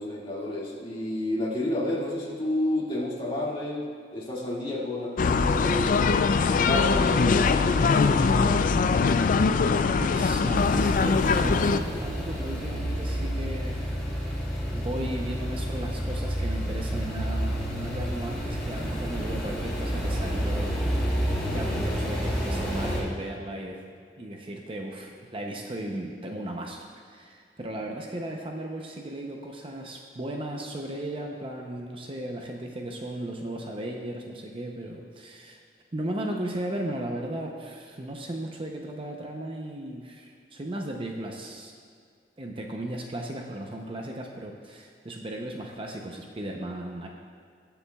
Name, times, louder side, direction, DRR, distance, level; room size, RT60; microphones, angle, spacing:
voice 1, 0.0-6.0 6.5-8.7, left 1 dB, 30° left, -5 dB, 2.1 m, -30 dB
sound 1, 5.2-11.8, left 4 dB, 50° left, 0.3 m, -22 dB
voice 2, 10.0-13.9 14.3-20.7 21.3-23.8 24.2-35.6 35.9-41.7 42.4-47.1, right 1 dB, 30° right, 1 dB, 0.7 m, -36 dB
sound 2, 10.5-23.0, equal, 5° left, 2.6 m, -29 dB
21.0 x 7.0 x 2.3 m, 2.2 s
head